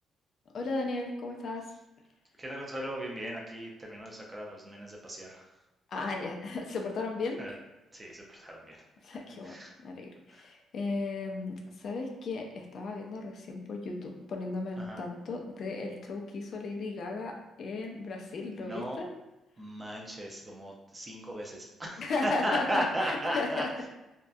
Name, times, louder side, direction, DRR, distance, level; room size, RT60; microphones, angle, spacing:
voice 1, 0.5-1.7 5.9-7.4 9.0-9.6 9.8-19.1 22.0-23.9, left 3 dB, 60° left, 2 dB, 0.4 m, -35 dB
voice 2, 2.4-5.6 7.4-7.6 7.9-8.8 9.4-9.7 10.3-10.4 14.8-15.0 18.6-19.0 19.6-23.6, equal, 25° right, -1 dB, 0.5 m, -36 dB
2.6 x 2.2 x 2.3 m, 0.99 s
cardioid pair, 90°, 0 cm